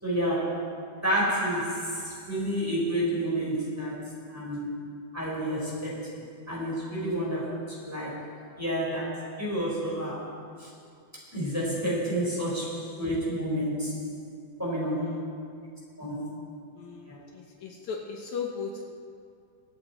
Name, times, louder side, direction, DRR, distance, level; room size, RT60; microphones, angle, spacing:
voice 1, 0.0-0.8 1.0-10.7 11.2-14.1 14.6-15.4 16.0-16.4 17.1-17.2, equal, 5° right, -5 dB, 3.9 m, -30 dB
voice 2, 14.9-15.2 16.8-18.8, left 5 dB, 70° left, 1 dB, 2.3 m, -37 dB
24.5 x 8.7 x 4.2 m, 2.4 s
omnidirectional pair, 3.6 m